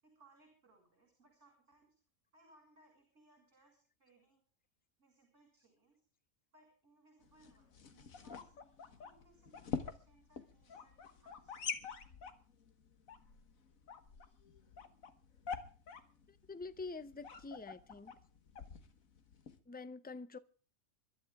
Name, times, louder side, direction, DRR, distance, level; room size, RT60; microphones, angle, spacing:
voice 1, 0.0-1.9 2.3-4.4 5.0-5.9 6.5-8.5 9.0-11.6, right 2 dB, 55° right, 6.6 m, -67 dB
sound 1, 7.2-19.6, left 6 dB, 75° left, 1.8 m, -47 dB
voice 2, 16.3-18.1 19.7-20.4, left 3 dB, 10° left, 0.4 m, -46 dB
25.5 x 12.5 x 3.5 m
omnidirectional pair, 1.4 m